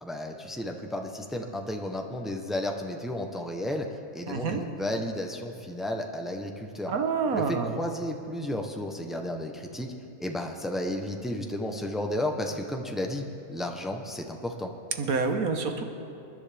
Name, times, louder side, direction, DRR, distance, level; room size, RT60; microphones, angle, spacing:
voice 1, 0.0-3.9 4.1-6.9 7.3-9.9 10.2-14.7, left 1 dB, ahead, 3 dB, 0.5 m, -33 dB
voice 2, 4.3-4.6 6.9-7.7 15.0-15.8, right 4 dB, 70° right, 5 dB, 1.4 m, -27 dB
27.5 x 11.0 x 3.4 m, 2.6 s
omnidirectional pair, 1.6 m